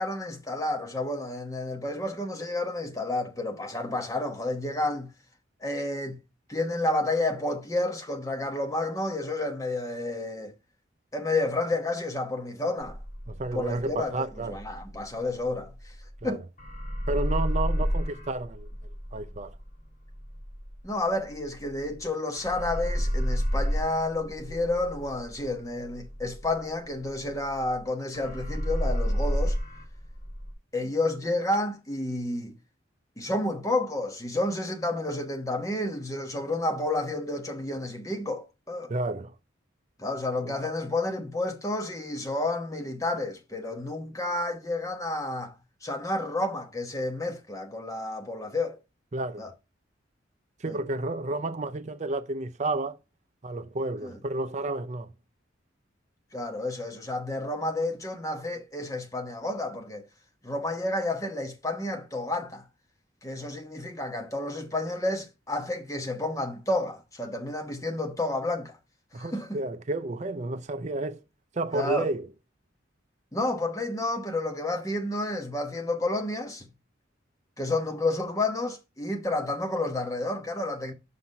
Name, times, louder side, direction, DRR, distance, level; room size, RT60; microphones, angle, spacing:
voice 1, 0.0-5.1 5.6-6.2 6.5-10.5 11.1-13.0 13.5-14.2 14.5-15.7 16.2-16.4 20.8-29.6 30.7-32.5 33.2-38.9 40.0-45.5 45.8-48.8 49.4-49.5 50.7-50.8 54.0-54.2 56.3-60.0 60.4-62.7 63.2-68.7 69.1-69.6 71.7-72.0 73.3-76.7 77.6-80.9, left 2 dB, 15° left, 1.2 m, -30 dB
sound 1, 12.8-16.3 16.6-22.1 22.4-27.8 28.1-30.5, equal, 40° left, 1.9 m, -31 dB
voice 2, 13.3-14.6 16.2-16.4 17.1-18.7 19.1-19.6 38.9-39.3 40.4-40.6 49.1-49.4 50.6-53.0 53.4-55.1 69.1-71.2 71.5-72.3, right 2 dB, 40° right, 0.5 m, -31 dB
5.8 x 5.8 x 5.4 m
head